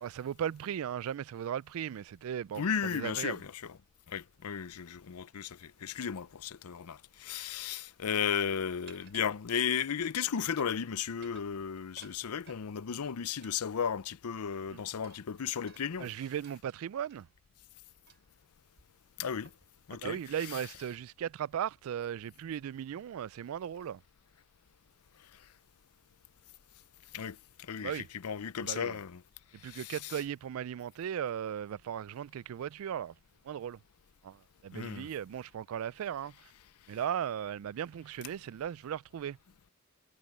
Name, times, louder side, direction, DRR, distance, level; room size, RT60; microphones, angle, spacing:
voice 1, 0.0-3.4 14.7-14.8 16.0-17.3 19.9-24.0 27.8-28.1 28.6-29.0 29.5-33.1 33.4-33.8 34.2-36.5 36.9-39.4, right 9 dB, 70° right, 0.3 m, -37 dB
voice 2, 2.6-3.4 4.1-16.1 19.2-19.5 19.9-20.2 27.1-27.4 27.7-29.2 29.6-29.8 34.7-35.1, left 7 dB, 85° left, 0.6 m, -34 dB
sound 1, 8.9-10.0 10.4-10.8 11.1-12.7 13.4-14.4 15.0-17.2 18.1-18.4 18.8-18.9 19.4-19.7 20.0-20.2 20.7-21.1, right 6 dB, 50° right, 5.1 m, -59 dB
head